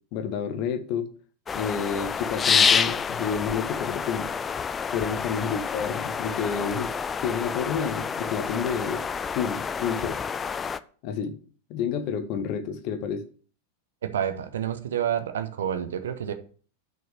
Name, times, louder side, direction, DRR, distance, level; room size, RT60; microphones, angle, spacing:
voice 1, 0.1-1.1 1.5-4.3 4.9-6.9 7.2-9.0 9.3-10.2 11.0-11.4 11.7-13.2, left 6 dB, 40° left, 8 dB, 1.0 m, -29 dB
sound 1, 1.5-10.8, left 6 dB, 20° left, 0.4 m, -28 dB
voice 2, 14.0-16.3, right 9 dB, 60° right, 10 dB, 0.9 m, -29 dB
6.1 x 5.4 x 6.4 m, 0.43 s
figure-of-eight pair, 90°, 0 cm